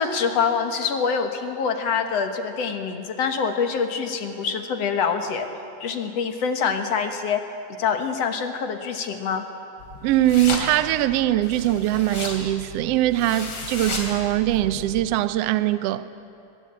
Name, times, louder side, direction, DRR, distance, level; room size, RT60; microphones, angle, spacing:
voice 1, 0.0-5.5 5.8-7.5 7.8-9.5, left 6 dB, 65° left, 2.3 m, -25 dB
sound 1, 9.8-15.1, left 3 dB, 45° left, 3.7 m, -34 dB
voice 2, 10.0-16.1, right 14 dB, 70° right, 1.6 m, -22 dB
22.0 x 21.5 x 8.6 m
omnidirectional pair, 3.4 m